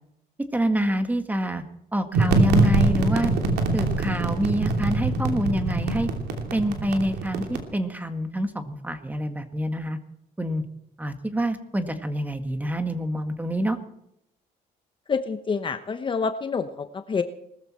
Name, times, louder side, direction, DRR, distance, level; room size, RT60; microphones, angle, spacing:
voice 1, 0.5-1.6 1.9-3.3 3.7-6.1 6.5-10.0 10.4-10.6 11.0-13.8, right 1 dB, 10° right, 8 dB, 1.8 m, -26 dB
sound 1, 2.1-7.6, right 2 dB, 75° right, 3.0 m, -23 dB
voice 2, 15.1-17.2, left 5 dB, 30° left, 9 dB, 1.0 m, -27 dB
20.5 x 14.0 x 4.4 m, 0.78 s
cardioid pair, 110°, 17 cm